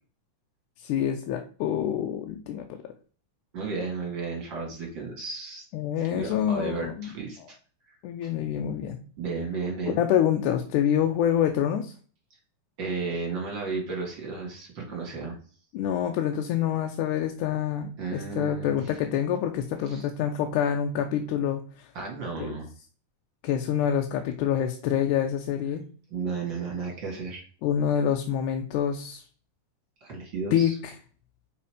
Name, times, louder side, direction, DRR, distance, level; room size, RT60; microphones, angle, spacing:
voice 1, 0.8-2.9 5.7-7.1 8.0-9.0 10.0-11.9 15.7-21.9 22.4-22.6 23.4-25.8 27.6-29.2 30.5-30.7, left 9 dB, 80° left, 5 dB, 2.1 m, -26 dB
voice 2, 3.5-5.6 6.0-7.4 8.2-8.3 9.2-10.0 12.8-15.4 18.0-18.9 19.9-20.1 21.9-22.7 26.1-27.4 30.0-30.8, right 4 dB, 40° right, 0 dB, 2.5 m, -33 dB
5.6 x 5.1 x 5.0 m, 0.40 s
omnidirectional pair, 3.5 m